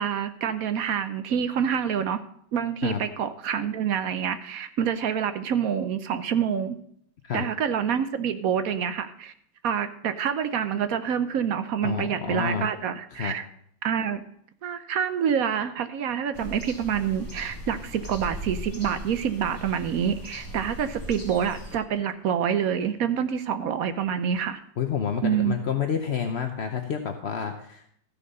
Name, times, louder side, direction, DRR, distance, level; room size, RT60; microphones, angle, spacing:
voice 1, 0.0-2.2 2.5-6.8 7.3-9.3 9.6-13.5 13.8-14.2 14.6-24.6 25.2-25.6, right 8 dB, 65° right, 10 dB, 0.9 m, -27 dB
voice 2, 11.8-12.7 13.1-13.4 24.8-27.9, left 7 dB, 65° left, 5 dB, 0.6 m, -29 dB
sound 1, 16.3-21.8, equal, 10° left, 2.4 m, -39 dB
13.5 x 7.0 x 5.4 m, 0.67 s
omnidirectional pair, 2.2 m